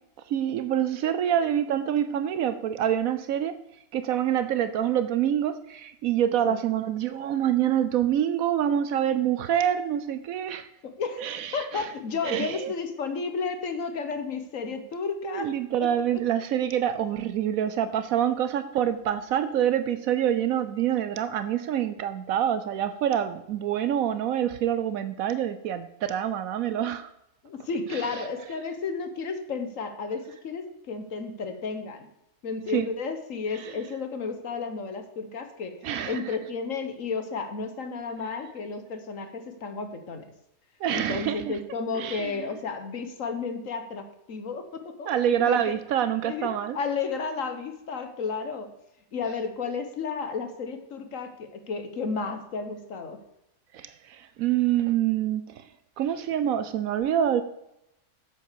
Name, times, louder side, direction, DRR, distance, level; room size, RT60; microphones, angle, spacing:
voice 1, 0.3-3.6 3.9-10.7 11.2-11.9 12.2-12.7 15.2-27.1 27.9-28.1 32.7-32.9 33.5-33.7 35.8-36.2 40.8-41.6 41.9-42.5 45.1-46.8 53.7-55.7 56.0-57.4, right 10 dB, 75° right, 12 dB, 1.0 m, -26 dB
voice 2, 10.8-11.2 11.5-15.5 15.8-15.9 27.4-32.1 32.4-35.8 36.1-40.3 40.9-45.7 46.2-46.5 46.7-48.7 49.1-53.2, left 5 dB, 65° left, 8 dB, 1.5 m, -32 dB
8.2 x 7.8 x 6.8 m, 0.83 s
omnidirectional pair, 1.5 m